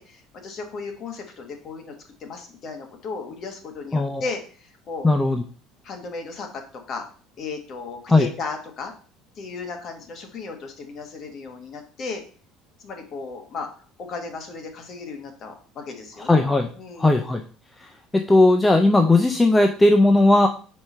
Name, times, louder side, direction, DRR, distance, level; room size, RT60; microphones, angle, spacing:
voice 1, 0.0-1.9 2.2-5.1 5.8-6.6 6.9-7.1 7.4-8.9 9.4-12.2 12.8-13.7 14.0-16.5 16.7-17.2, left 4 dB, 30° left, 3 dB, 1.2 m, -35 dB
voice 2, 3.9-4.2 5.0-5.4 8.1-8.3 16.2-16.7 17.0-17.4 17.8-20.5, left 2 dB, 5° left, 5 dB, 0.4 m, -17 dB
4.8 x 4.5 x 5.4 m, 0.41 s
cardioid pair, 180°, 0 cm